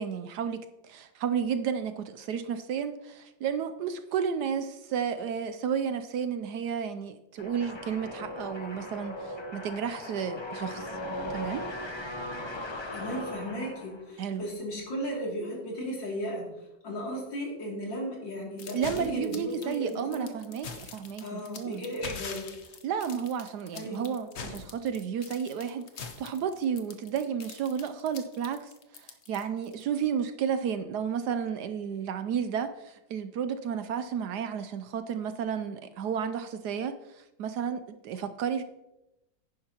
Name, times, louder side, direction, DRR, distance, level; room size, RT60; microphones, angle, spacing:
voice 1, 0.0-11.0 11.3-11.7 14.2-14.4 18.7-21.8 22.8-38.6, right 7 dB, 70° right, 10 dB, 1.1 m, -32 dB
sound 1, 7.4-14.1, left 1 dB, 25° left, 0.6 m, -38 dB
voice 2, 12.9-16.4 16.8-20.3 21.2-22.5 23.7-24.1, equal, 80° left, -3 dB, 3.5 m, -35 dB
sound 2, 18.6-29.8, left 5 dB, 50° left, 0.9 m, -43 dB
10.5 x 10.0 x 2.9 m, 0.92 s
omnidirectional pair, 2.0 m